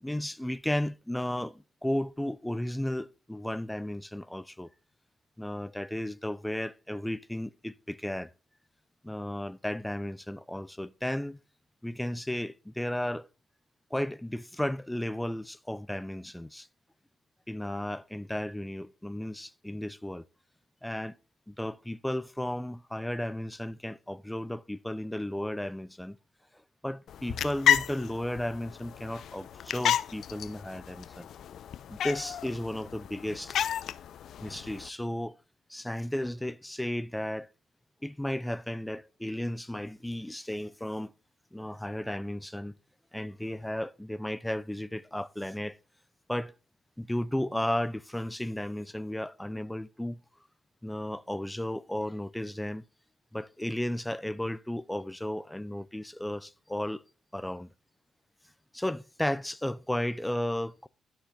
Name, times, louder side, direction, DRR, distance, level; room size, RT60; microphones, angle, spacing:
voice 1, 0.0-4.7 5.4-8.3 9.0-11.4 11.8-13.3 13.9-16.7 17.5-20.2 20.8-21.2 21.5-26.2 26.8-31.3 31.9-33.6 34.4-35.4 35.7-37.5 38.0-41.1 41.5-42.7 43.1-45.8 46.3-46.5 47.0-50.2 50.8-52.8 53.3-57.0 57.3-57.7 58.7-60.9, left 1 dB, 5° left, 0.5 m, -34 dB
sound 1, 27.1-34.9, left 9 dB, 70° left, 0.5 m, -32 dB
11.5 x 7.3 x 4.0 m
cardioid pair, 90°, 0 cm